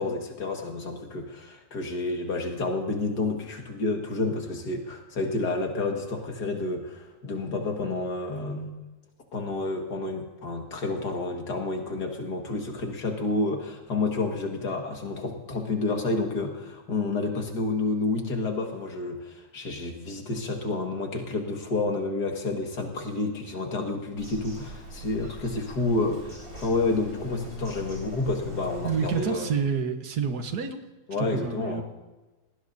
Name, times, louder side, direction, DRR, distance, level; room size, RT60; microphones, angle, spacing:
voice 1, 0.0-8.8 9.3-29.5 31.1-31.8, left 3 dB, 85° left, 3 dB, 2.4 m, -29 dB
Bird vocalization bird call bird song, 24.2-29.2, left 2 dB, 60° right, 5.4 m, -41 dB
voice 2, 28.8-30.8 31.2-31.8, right 6 dB, 75° right, 6 dB, 1.8 m, -28 dB
19.5 x 17.5 x 2.7 m, 1.2 s
omnidirectional pair, 1.7 m